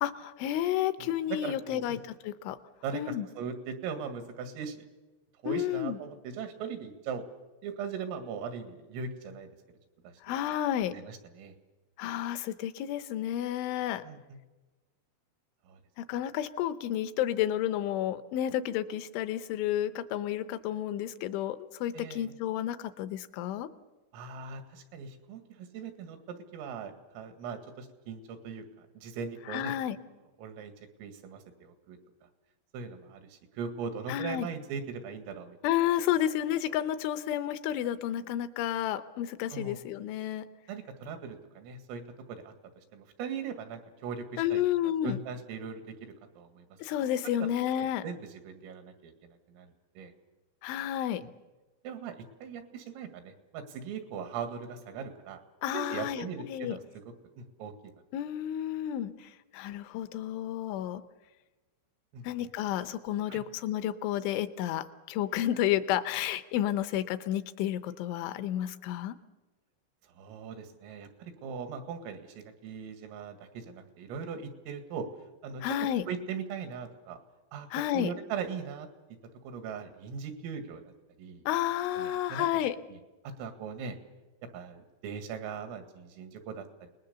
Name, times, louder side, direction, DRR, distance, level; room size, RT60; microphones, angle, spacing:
voice 1, 0.0-2.6 2.9-3.3 5.5-6.0 10.2-11.0 12.0-14.0 16.0-23.7 29.5-30.0 34.1-34.5 35.6-40.5 44.4-45.2 46.8-48.0 50.6-51.2 55.6-56.8 58.1-61.0 62.2-69.2 75.6-76.0 77.7-78.1 81.5-82.8, left 11 dB, 80° left, 12 dB, 3.1 m, -31 dB
voice 2, 1.0-2.0 2.8-4.9 5.4-7.3 7.6-9.5 10.0-10.1 10.9-11.6 14.0-14.4 15.7-15.8 21.9-22.3 24.1-29.8 30.4-30.7 31.0-32.0 32.7-35.6 39.5-39.8 40.7-42.0 42.3-42.5 42.9-44.6 45.0-46.7 47.4-47.5 47.8-49.7 50.0-50.1 51.8-55.4 55.7-56.8 57.4-57.7 62.1-62.3 63.3-63.4 70.2-75.1 75.4-75.8 76.1-77.2 77.5-78.9 79.4-80.9 81.2-81.4 82.0-82.5 82.9-83.0 83.2-84.0 84.5-86.9, right 6 dB, 90° right, 7 dB, 4.5 m, -40 dB
28.5 x 20.0 x 6.9 m, 1.2 s
omnidirectional pair, 5.8 m